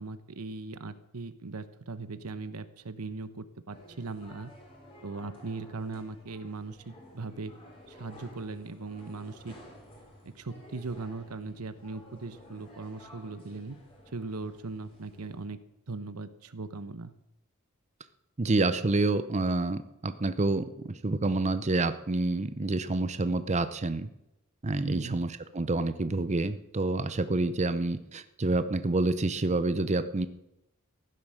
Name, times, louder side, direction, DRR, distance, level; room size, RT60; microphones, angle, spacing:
voice 1, 0.0-4.5 5.0-7.6 7.9-9.6 10.2-13.8 14.1-15.6 15.9-17.1 24.8-25.2, right 3 dB, 85° right, 13 dB, 1.0 m, -39 dB
sound 1, 3.7-15.4, left 1 dB, 25° left, 4.6 m, -53 dB
voice 2, 18.4-24.1 24.6-30.3, right 2 dB, 30° right, 11 dB, 0.7 m, -28 dB
15.5 x 11.0 x 6.5 m, 0.87 s
head